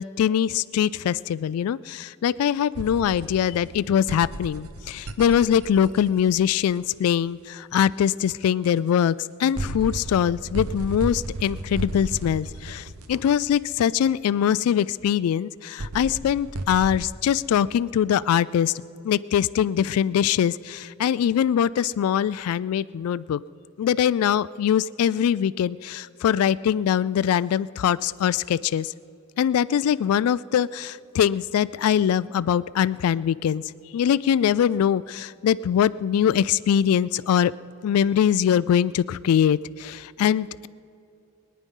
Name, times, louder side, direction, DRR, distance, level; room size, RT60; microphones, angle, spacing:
voice 1, 0.0-18.7 19.0-23.4 23.8-28.9 29.4-33.6 33.9-37.5 37.8-40.7, left 9 dB, 90° left, 17 dB, 0.3 m, -22 dB
sound 1, 2.7-6.9 8.6-8.7 9.5-14.0 15.8-17.0, right 2 dB, 90° right, 0.9 m, -34 dB
22.5 x 9.6 x 5.4 m, 2.6 s
head